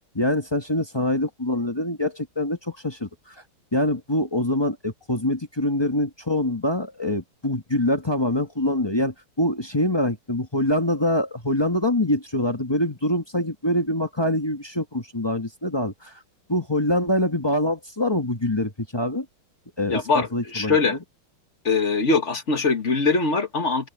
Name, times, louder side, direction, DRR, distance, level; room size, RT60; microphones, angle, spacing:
voice 1, 0.1-3.3 3.7-16.1 16.5-19.2 19.8-21.0, left 1 dB, 15° left, 1.0 m, -24 dB
voice 2, 19.9-21.0 21.6-23.9, left 4 dB, 35° left, 1.7 m, -22 dB
open air
omnidirectional pair, 2.4 m